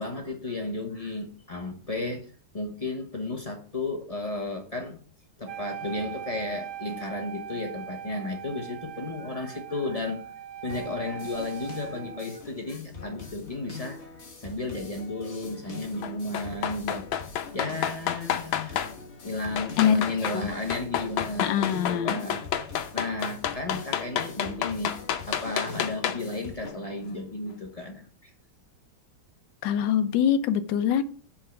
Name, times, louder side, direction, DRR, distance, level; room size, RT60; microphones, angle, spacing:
voice 1, 0.0-2.3 2.5-5.0 5.4-10.3 10.6-14.0 14.4-17.1 17.5-22.4 22.9-25.0 25.3-28.3, left 2 dB, 20° left, 2 dB, 1.1 m, -33 dB
Wind instrument woodwind instrument, 5.5-12.4, right 11 dB, 65° right, 1.2 m, -40 dB
sound 1, 10.7-26.7, left 4 dB, 40° left, 1.5 m, -43 dB
sound 2, 16.0-18.9 19.6-20.4 20.7-26.3 26.7-26.8, left 9 dB, 90° left, 1.5 m, -29 dB
voice 2, 21.4-22.2 29.6-31.0, left 9 dB, 70° left, 10 dB, 1.3 m, -24 dB
5.7 x 5.5 x 6.8 m, 0.43 s
omnidirectional pair, 2.1 m